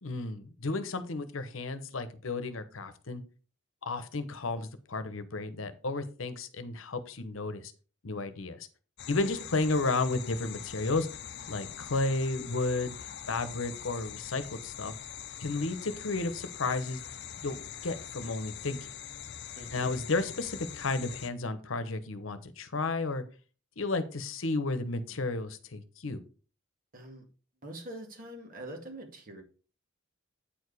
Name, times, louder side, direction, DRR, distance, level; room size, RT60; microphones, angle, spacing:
voice 1, 0.0-3.2 3.8-7.7 8.0-8.7 9.1-11.1 11.5-13.0 13.3-14.9 15.4-17.0 17.4-18.9 19.7-23.2 23.8-26.2, left 3 dB, 75° left, 11 dB, 0.9 m, -32 dB
sound 1, 9.0-21.3, left 9 dB, 55° left, 0.7 m, -43 dB
voice 2, 19.6-19.9 26.9-27.2 27.6-29.4, right 1 dB, 45° right, 3 dB, 2.1 m, -44 dB
8.8 x 4.8 x 4.9 m, 0.37 s
head